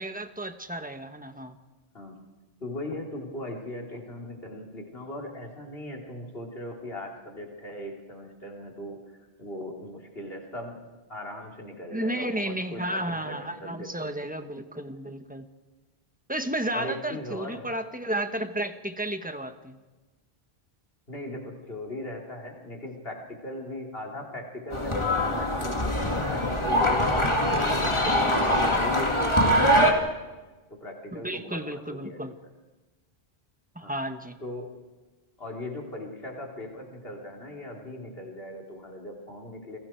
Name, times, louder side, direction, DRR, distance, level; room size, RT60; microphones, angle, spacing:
voice 1, 0.0-1.5 11.9-15.5 16.3-19.8 28.0-28.4 31.1-32.3 33.7-34.4, right 1 dB, 10° right, 7 dB, 1.2 m, -33 dB
voice 2, 2.6-10.8 11.1-14.1 16.7-17.7 21.1-30.0 30.7-32.3 33.8-33.9 34.4-34.8 35.4-39.8, left 1 dB, 65° left, 0 dB, 3.9 m, -39 dB
sound 1, 24.7-29.9, equal, 25° left, 2.3 m, -23 dB
29.0 x 22.0 x 4.6 m, 1.2 s
omnidirectional pair, 1.1 m